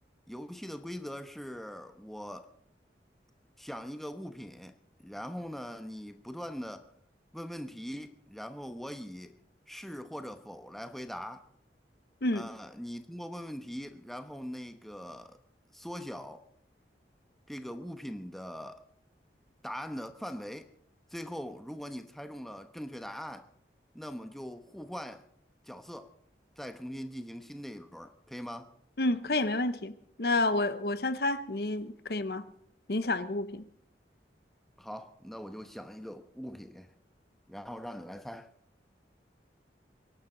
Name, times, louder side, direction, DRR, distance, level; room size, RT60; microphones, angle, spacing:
voice 1, 0.3-2.5 3.6-4.7 5.0-6.9 7.3-9.3 9.7-11.4 12.3-15.4 15.7-16.4 17.5-18.8 19.6-20.7 21.1-23.5 23.9-25.2 25.6-26.1 26.6-28.7 34.8-36.9 37.5-38.5, equal, ahead, 0.9 m, -41 dB
voice 2, 29.0-32.4 32.9-33.6, left 2 dB, 60° left, 0.8 m, -30 dB
25.0 x 11.5 x 3.9 m
head